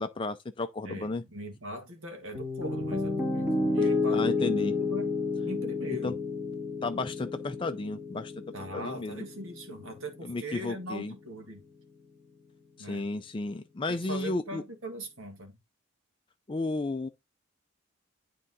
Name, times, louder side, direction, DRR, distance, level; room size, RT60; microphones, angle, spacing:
voice 1, 0.0-1.2 4.1-4.7 6.0-6.1 6.8-8.3 8.7-9.3 10.2-11.1 12.8-14.6 16.5-17.1, left 2 dB, 25° left, 0.4 m, -33 dB
voice 2, 0.8-5.1 5.4-6.2 8.5-11.6 12.8-13.0 13.9-15.6, equal, 70° right, 1.8 m, -40 dB
Piano, 2.3-10.4, left 3 dB, 10° right, 2.0 m, -31 dB
9.9 x 3.7 x 4.0 m
head